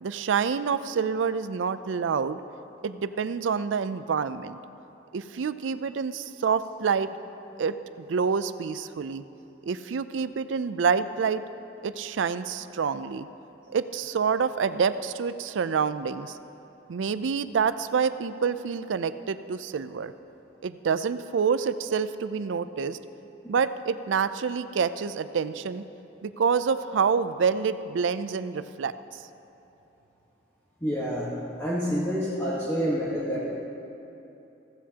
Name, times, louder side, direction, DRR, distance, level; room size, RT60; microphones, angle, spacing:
voice 1, 0.0-2.4 2.8-4.6 5.1-7.1 7.6-9.2 9.7-11.4 11.8-13.3 13.7-16.4 16.9-20.1 20.6-23.0 23.5-25.8 26.2-28.9, right 6 dB, 85° right, 13 dB, 0.4 m, -27 dB
voice 2, 30.8-31.3 31.6-33.6, equal, 15° left, -8 dB, 1.3 m, -28 dB
15.5 x 14.5 x 2.9 m, 3.0 s
head